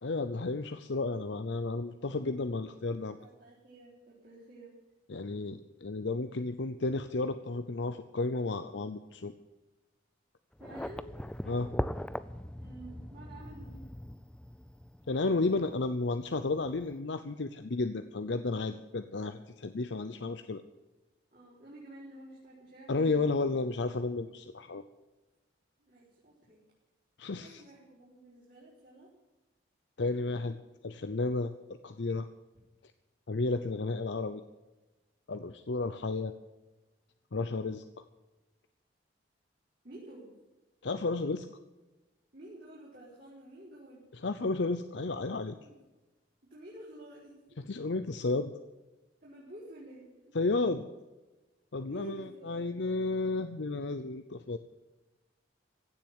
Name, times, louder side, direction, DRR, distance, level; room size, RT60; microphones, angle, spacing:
voice 1, 0.0-3.2 5.1-9.3 11.5-11.7 15.1-20.6 22.9-24.8 27.2-27.6 30.0-30.6 30.8-31.5 31.8-32.3 33.3-34.4 35.3-36.3 37.3-37.8 40.8-41.5 44.2-45.6 47.7-48.5 50.3-50.9 51.7-54.6, left 3 dB, 75° left, 9 dB, 0.7 m, -32 dB
voice 2, 3.2-4.7 10.6-11.1 12.6-13.9 21.3-23.6 25.8-26.6 27.4-29.1 39.8-40.3 42.3-44.1 45.6-45.7 46.4-47.3 49.2-50.3 51.8-52.8, right 1 dB, 50° right, -7 dB, 4.3 m, -50 dB
sound 1, 10.5-17.0, left 1 dB, 5° left, 0.4 m, -40 dB
16.0 x 7.7 x 9.5 m, 1.1 s
head